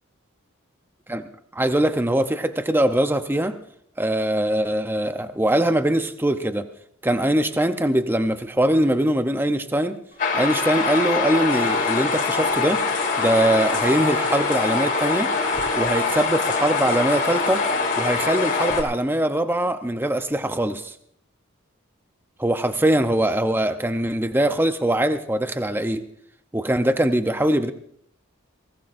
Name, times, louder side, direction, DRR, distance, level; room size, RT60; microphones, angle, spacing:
voice 1, 1.5-3.6 4.0-6.7 7.0-10.0 10.3-12.8 13.2-15.3 15.8-17.6 18.0-20.9 22.4-26.0 26.5-27.7, right 1 dB, 10° right, 8 dB, 0.7 m, -22 dB
sound 1, 10.2-18.8, left 4 dB, 40° left, 3.8 m, -23 dB
23.0 x 19.0 x 2.6 m, 0.65 s
head